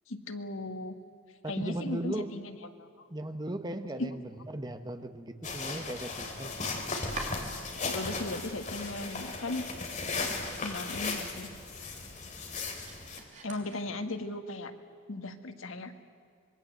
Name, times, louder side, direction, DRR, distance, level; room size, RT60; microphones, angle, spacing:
voice 1, 0.1-1.0 1.4-3.1 4.0-4.1 7.9-9.6 10.6-11.5 13.1-14.7 15.1-15.9, left 2 dB, 85° left, 7 dB, 1.7 m, -37 dB
voice 2, 1.4-2.3 3.1-4.2 4.5-6.6, right 1 dB, 20° right, 8 dB, 1.2 m, -37 dB
sound 1, 5.4-13.2, left 3 dB, 40° left, 3.4 m, -36 dB
Domestic sounds home sounds, 5.6-8.2 8.5-9.3 9.6-9.7 10.2-10.3 10.6-14.3, right 3 dB, 40° right, 3.2 m, -48 dB
25.5 x 22.0 x 7.8 m, 2.3 s
head